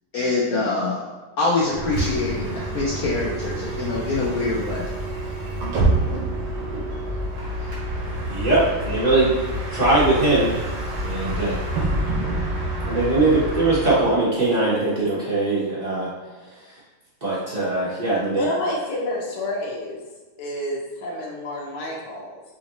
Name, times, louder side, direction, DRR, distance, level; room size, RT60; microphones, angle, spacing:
voice 1, 0.1-1.0 1.4-4.9, left 3 dB, 85° left, -5 dB, 0.8 m, -24 dB
Bus, 1.7-14.1, right 1 dB, 85° right, 1.8 m, -27 dB
voice 2, 8.2-9.3 9.7-10.6 11.0-11.6 12.8-16.1 17.2-18.4, right 2 dB, 65° right, -8 dB, 0.4 m, -21 dB
voice 3, 18.1-20.0 20.4-22.4, left 1 dB, 65° left, -4 dB, 1.2 m, -29 dB
5.2 x 2.6 x 2.9 m, 1.3 s
omnidirectional pair, 2.3 m